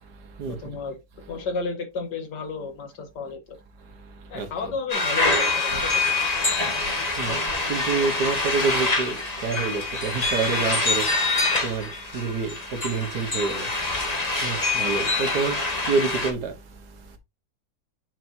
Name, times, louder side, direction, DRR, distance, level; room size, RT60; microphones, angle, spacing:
voice 1, 0.5-1.0 1.3-3.6 4.3-6.0, left 4 dB, 80° left, 2.0 m, -32 dB
sound 1, 4.9-16.3, left 3 dB, 25° left, 1.6 m, -25 dB
voice 2, 7.7-9.2 9.4-11.1 11.6-13.7 14.4-15.6 15.9-16.5, right 4 dB, 70° right, 1.8 m, -27 dB
7.8 x 5.9 x 2.8 m
omnidirectional pair, 1.8 m